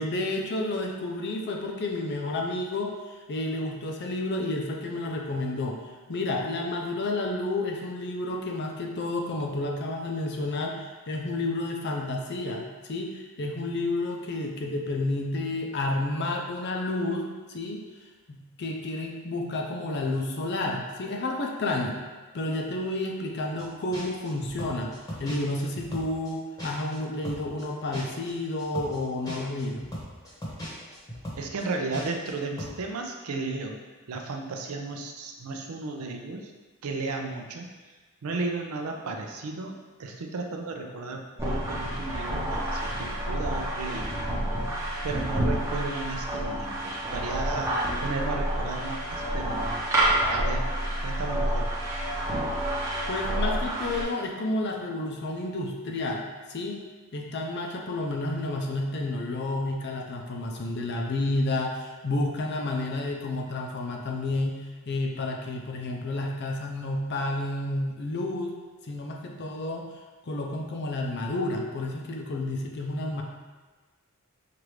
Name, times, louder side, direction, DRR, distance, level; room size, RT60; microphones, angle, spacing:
voice 1, 0.0-2.9 3.3-5.8 6.1-17.8 18.3-22.0 22.3-24.9 25.2-29.8 53.1-56.2 56.5-56.8 57.1-68.5 68.9-69.9 70.3-73.2, left 2 dB, 50° left, 1 dB, 0.5 m, -30 dB
sound 1, 23.6-23.7 23.9-27.0 27.2-32.3 32.6-32.8, equal, 15° left, 0.9 m, -38 dB
voice 2, 31.4-33.8 34.1-36.5 36.8-37.7 38.2-44.1 44.4-44.5 45.0-47.7 48.0-49.8 50.3-50.7 51.0-51.7, right 3 dB, 75° right, 3 dB, 0.5 m, -34 dB
sound 2, 41.4-54.0, right 1 dB, 15° right, 0.8 m, -29 dB
4.6 x 2.5 x 3.2 m, 1.3 s
head